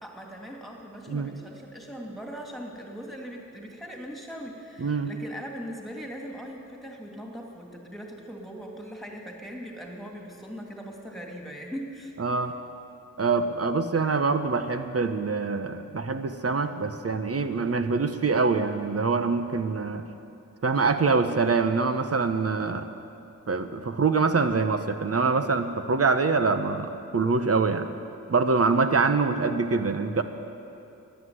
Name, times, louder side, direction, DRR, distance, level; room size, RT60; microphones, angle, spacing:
voice 1, 0.0-12.1, equal, ahead, 0 dB, 2.8 m, -40 dB
voice 2, 4.8-5.1 12.2-12.5 13.2-20.0 20.6-22.9 23.5-27.9 28.3-30.2, right 4 dB, 45° right, 8 dB, 1.1 m, -25 dB
14.0 x 10.5 x 9.7 m, 2.7 s
cardioid pair, 65°, 33 cm